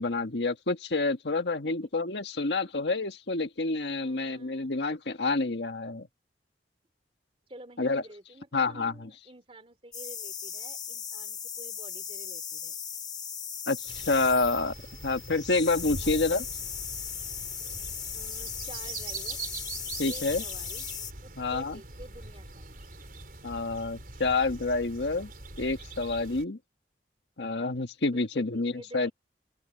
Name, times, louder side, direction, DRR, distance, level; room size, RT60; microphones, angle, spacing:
voice 1, 0.0-6.1 7.8-8.0 8.5-9.1 13.7-14.7 15.0-16.4 20.0-20.4 21.4-21.8 23.4-25.3 25.6-26.6 27.4-29.1, left 3 dB, 80° left, 1.5 m, -28 dB
voice 2, 4.0-4.7 7.5-12.7 16.0-16.3 18.1-19.4 20.1-20.9 21.2-22.8 28.3-29.1, right 1 dB, 30° right, 3.0 m, -50 dB
sound 1, 9.9-21.1, left 8 dB, 25° left, 3.5 m, -38 dB
sound 2, 13.9-26.4, right 3 dB, 55° right, 5.5 m, -43 dB
open air
head